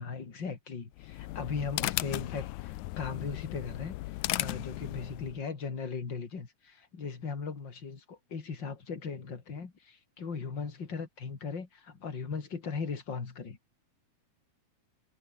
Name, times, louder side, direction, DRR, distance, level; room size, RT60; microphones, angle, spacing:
voice 1, 0.0-13.6, left 5 dB, 35° left, 3.4 m, -38 dB
sound 1, 0.9-5.4, left 19 dB, 80° left, 2.0 m, -36 dB
omnidirectional pair, 3.6 m